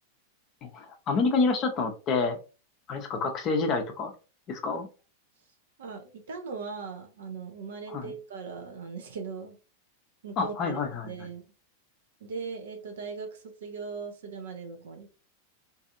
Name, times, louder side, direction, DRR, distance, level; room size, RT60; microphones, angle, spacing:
voice 1, 0.6-2.4 2.9-4.1 4.5-4.9 7.9-8.1 10.4-11.1, left 4 dB, 35° left, 4 dB, 0.6 m, -28 dB
voice 2, 5.8-9.6 10.2-10.8 11.0-11.4 12.2-15.1, right 5 dB, 60° right, 5 dB, 0.6 m, -39 dB
2.6 x 2.5 x 2.5 m, 0.33 s
figure-of-eight pair, 90°, 0 cm